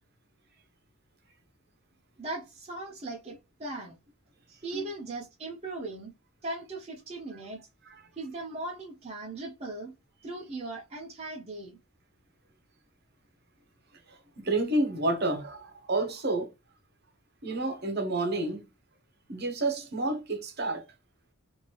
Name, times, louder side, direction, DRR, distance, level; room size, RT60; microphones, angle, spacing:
voice 1, 2.2-4.0 4.5-6.1 6.4-7.6 8.2-9.9 10.2-11.8, right 2 dB, 30° right, 0.5 m, -38 dB
voice 2, 14.1-16.5 17.4-18.7 19.3-20.9, right 2 dB, 45° right, 0.9 m, -30 dB
3.2 x 2.6 x 2.9 m
head